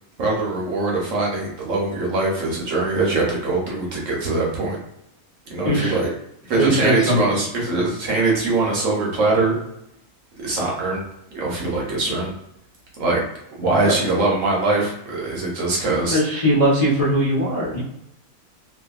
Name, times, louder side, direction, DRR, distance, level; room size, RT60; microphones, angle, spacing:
voice 1, 0.2-4.8 5.5-6.1 6.5-9.6 10.4-11.0 11.3-12.3 13.0-13.2 13.6-16.2, right 3 dB, 65° right, -3 dB, 1.0 m, -22 dB
voice 2, 5.6-6.0 6.6-7.2 16.1-17.8, equal, 25° left, -10 dB, 0.9 m, -19 dB
2.7 x 2.5 x 2.3 m, 0.81 s
omnidirectional pair, 1.5 m